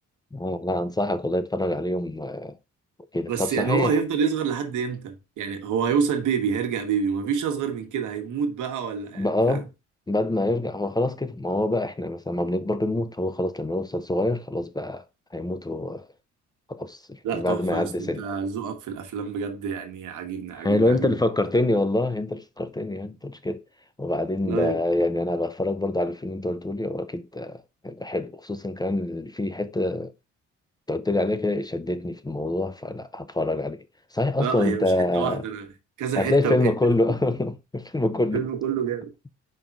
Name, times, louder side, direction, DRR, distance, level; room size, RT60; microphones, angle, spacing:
voice 1, 0.3-2.5 3.1-4.0 9.1-9.7 10.1-15.0 15.3-16.1 16.7-18.2 20.5-23.6 24.0-30.1 30.9-33.8 34.1-35.4 36.2-38.4, left 1 dB, 15° left, 0.6 m, -26 dB
voice 2, 3.3-9.7 17.2-21.2 24.4-24.8 34.4-35.7 36.0-36.7 38.3-39.1, right 7 dB, 80° right, 1.4 m, -27 dB
5.3 x 3.9 x 5.9 m
cardioid pair, 90°, 30 cm